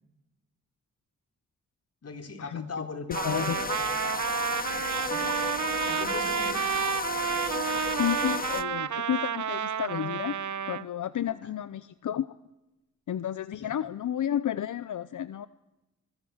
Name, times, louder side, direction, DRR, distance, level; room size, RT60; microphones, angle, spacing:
voice 1, 2.0-3.9 5.1-5.4 5.9-6.6 11.2-11.5 13.5-13.8, left 3 dB, 55° left, 7 dB, 3.9 m, -40 dB
sound 1, 3.1-8.6, left 4 dB, 30° left, 1.0 m, -33 dB
Trumpet, 3.1-10.8, right 8 dB, 80° right, 1.1 m, -30 dB
voice 2, 3.2-3.6 8.0-10.3 10.7-12.3 13.1-15.5, left 10 dB, 90° left, 15 dB, 0.8 m, -31 dB
25.5 x 22.0 x 7.3 m, 1.0 s
wide cardioid pair, 95°, 29 cm